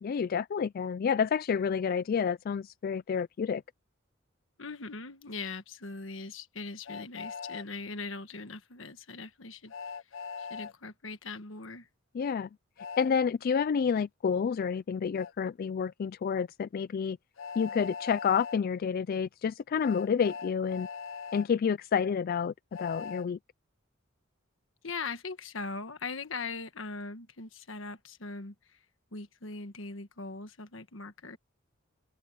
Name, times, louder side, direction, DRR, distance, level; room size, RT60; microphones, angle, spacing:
voice 1, 0.0-3.6 12.1-12.5 13.0-17.2 17.6-20.9 21.3-23.4, left 6 dB, 50° left, 0.3 m, -29 dB
voice 2, 4.6-9.7 10.4-11.9 24.8-28.8 29.1-31.4, left 4 dB, 70° left, 1.4 m, -40 dB
Train, 6.8-7.6 9.7-10.7 12.8-13.1 15.2-15.3 17.4-18.6 19.8-21.5 22.7-23.3, left 5 dB, 90° left, 0.9 m, -40 dB
open air
head